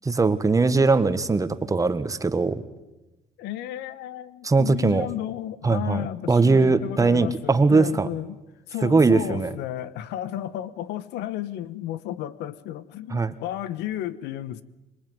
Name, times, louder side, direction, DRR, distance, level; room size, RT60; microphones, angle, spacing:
voice 1, 0.0-2.6 4.4-5.1 5.6-8.1 8.8-9.5 13.1-13.3, right 3 dB, 20° right, 1.6 m, -20 dB
voice 2, 3.4-8.4 8.7-14.6, left 12 dB, 85° left, 1.2 m, -33 dB
26.5 x 22.0 x 9.5 m
cardioid pair, 110°, 17 cm